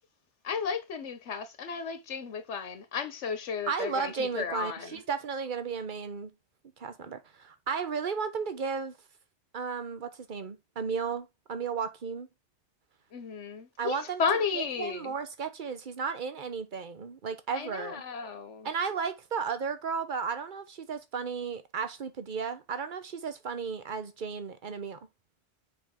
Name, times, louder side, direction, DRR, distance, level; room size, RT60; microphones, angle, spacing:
voice 1, 0.4-5.0 13.1-15.1 17.5-18.7, left 6 dB, 85° left, 1.2 m, -33 dB
voice 2, 3.7-6.3 6.8-8.9 9.5-12.3 13.8-14.2 14.6-18.0 18.6-25.0, right 6 dB, 45° right, 1.1 m, -34 dB
7.0 x 5.3 x 3.6 m
omnidirectional pair, 1.2 m